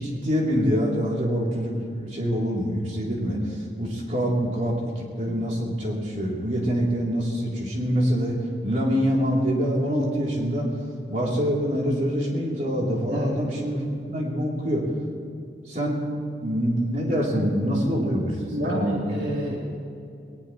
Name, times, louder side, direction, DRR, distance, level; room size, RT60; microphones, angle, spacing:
voice 1, 0.0-3.4 3.8-8.4 8.6-10.7 11.1-13.8 14.1-14.9 15.7-16.0 16.4-18.3 18.6-19.2, equal, 40° right, -3 dB, 3.5 m, -25 dB
voice 2, 18.5-19.6, equal, 80° right, -4 dB, 3.7 m, -28 dB
21.0 x 19.5 x 3.2 m, 2.5 s
head